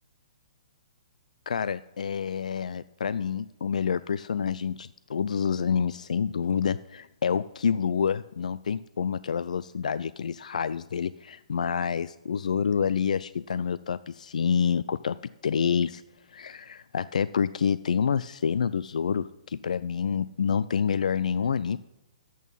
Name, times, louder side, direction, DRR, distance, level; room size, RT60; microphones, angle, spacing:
voice 1, 1.5-15.2 15.4-16.0 16.3-21.8, left 7 dB, 80° left, 16 dB, 0.4 m, -28 dB
11.0 x 8.5 x 5.5 m, 0.97 s
hypercardioid pair, 145°, 4 cm